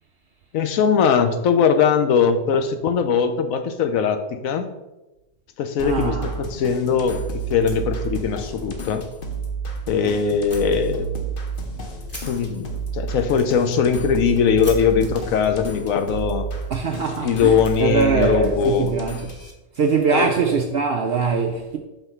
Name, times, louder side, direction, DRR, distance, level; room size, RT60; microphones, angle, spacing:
voice 1, 0.5-4.7 5.6-9.0 9.9-11.1 12.3-16.5 17.2-18.9 20.1-20.3, left 6 dB, 70° left, 1.0 m, -20 dB
sound 1, 5.8-19.5, right 4 dB, 45° left, 0.9 m, -31 dB
voice 2, 5.8-6.4 16.7-19.2 19.8-21.8, right 5 dB, 70° right, 0.5 m, -22 dB
Fire, 7.6-8.4 8.8-8.9 9.3-9.4 10.5-10.6 11.2-18.4, equal, 5° left, 1.4 m, -45 dB
5.7 x 3.7 x 5.5 m
omnidirectional pair, 1.6 m